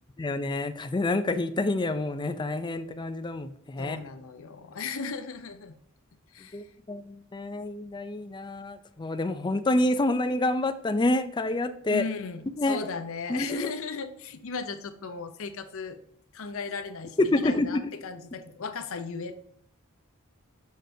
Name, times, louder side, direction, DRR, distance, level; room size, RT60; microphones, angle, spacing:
voice 1, 0.2-4.0 6.5-12.0 12.6-12.8 13.3-13.7 17.2-17.9, left 2 dB, 20° left, 10 dB, 0.4 m, -28 dB
voice 2, 3.8-5.7 6.3-6.7 11.9-16.0 16.3-19.4, left 4 dB, 70° left, 9 dB, 0.6 m, -36 dB
6.5 x 6.4 x 2.7 m, 0.68 s
head